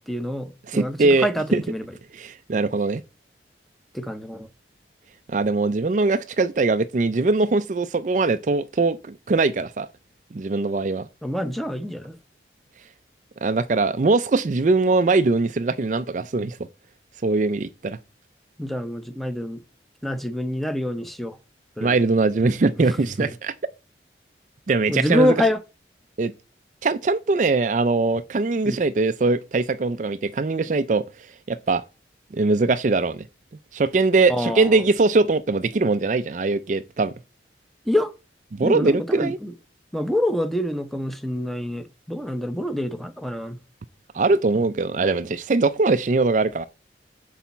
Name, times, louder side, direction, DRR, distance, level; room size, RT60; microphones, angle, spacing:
voice 1, 0.0-1.8 3.9-4.5 11.2-12.2 18.6-19.6 20.0-21.4 21.8-22.0 23.2-23.3 24.9-25.6 28.6-28.8 34.3-34.7 37.9-38.1 38.6-39.5 39.9-43.6, left 1 dB, ahead, 0.7 m, -26 dB
voice 2, 0.7-1.6 2.1-3.0 5.3-9.9 10.3-11.1 13.4-16.6 17.2-18.0 21.8-23.5 24.7-25.3 26.2-26.3 26.8-31.0 31.5-31.8 32.3-33.2 33.7-37.1 38.5-39.4 44.1-46.6, right 3 dB, 40° right, 0.4 m, -21 dB
10.0 x 4.1 x 7.1 m
head